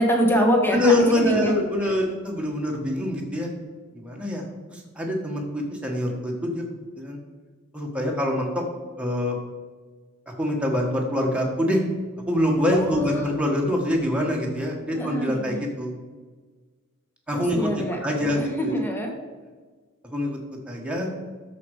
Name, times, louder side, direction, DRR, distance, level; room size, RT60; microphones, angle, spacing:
voice 1, 0.0-1.5 1.8-2.0 12.7-13.3 15.0-15.6 17.3-19.1, equal, 10° left, 2 dB, 1.5 m, -25 dB
voice 2, 0.7-3.5 3.9-4.4 4.7-6.6 7.0-7.2 7.7-8.6 9.0-9.4 10.4-11.8 12.2-15.9 17.3-17.7 18.0-18.7 20.1-20.4 20.6-21.1, left 1 dB, 5° right, -1 dB, 1.6 m, -25 dB
13.0 x 5.2 x 4.9 m, 1.4 s
head